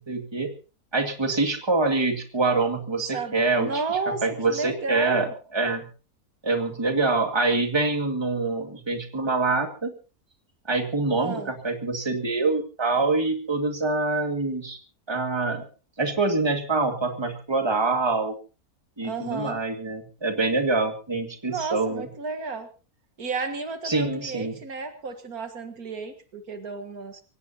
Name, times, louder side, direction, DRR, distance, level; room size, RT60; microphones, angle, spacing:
voice 1, 0.1-0.5 0.9-3.7 4.1-5.9 6.4-9.9 10.7-14.8 15.1-15.6 16.0-18.4 19.0-22.1 23.8-24.6, right 3 dB, 15° right, 5 dB, 2.1 m, -25 dB
voice 2, 3.1-5.3 11.2-11.5 19.0-19.6 21.4-22.7 23.2-27.2, right 4 dB, 70° right, 7 dB, 2.1 m, -32 dB
25.5 x 16.5 x 2.9 m, 0.34 s
omnidirectional pair, 1.6 m